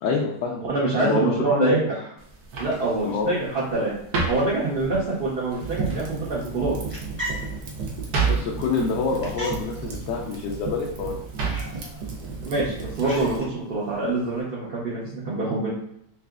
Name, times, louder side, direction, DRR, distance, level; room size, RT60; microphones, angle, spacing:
voice 1, 0.0-0.6 1.0-1.8 3.0-3.3 8.3-11.2, left 4 dB, 75° left, -2 dB, 1.2 m, -26 dB
voice 2, 0.6-1.9 2.6-3.9 4.3-6.8 12.4-15.7, right 2 dB, 45° right, -7 dB, 0.8 m, -25 dB
sound 1, 2.2-13.4, right 5 dB, 65° right, 1.2 m, -33 dB
Fire, 5.6-13.4, right 4 dB, 85° right, 1.4 m, -34 dB
sound 2, 6.6-14.4, equal, 10° left, 0.8 m, -40 dB
5.7 x 2.4 x 2.4 m, 0.72 s
omnidirectional pair, 1.9 m